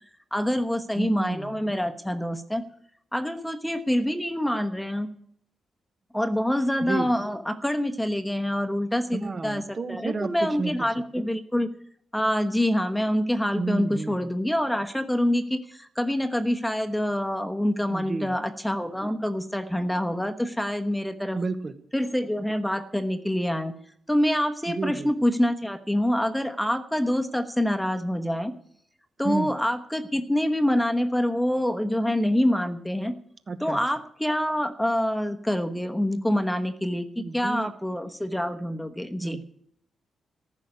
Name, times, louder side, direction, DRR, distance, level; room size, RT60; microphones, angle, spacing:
voice 1, 0.3-2.6 3.1-5.1 6.1-11.7 12.1-21.4 21.9-23.7 24.1-28.5 29.2-33.1 33.6-39.4, equal, 5° left, 7 dB, 1.1 m, -26 dB
voice 2, 1.0-1.6 6.8-7.1 9.1-10.9 11.2-11.3 13.5-14.3 17.9-18.4 21.3-21.8 24.7-25.1 29.2-29.5 33.5-33.8 37.2-37.7 39.2-39.4, right 3 dB, 35° right, 10 dB, 1.1 m, -31 dB
14.5 x 6.5 x 9.7 m, 0.69 s
cardioid pair, 110°, 0 cm